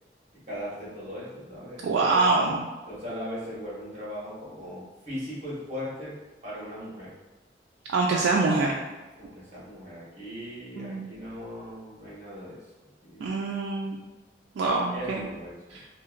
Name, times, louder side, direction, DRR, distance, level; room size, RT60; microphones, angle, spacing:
voice 1, 0.5-1.9 2.1-2.3 2.9-6.1 6.4-7.1 7.8-7.9 9.1-12.6 13.0-13.4 14.9-15.8, equal, 35° right, -9 dB, 1.2 m, -38 dB
voice 2, 1.8-2.7 7.9-8.7 10.8-11.1 13.2-14.0 14.6-15.3 15.7-15.8, right 3 dB, 90° right, -2 dB, 0.3 m, -25 dB
2.8 x 2.5 x 2.4 m, 1.2 s
head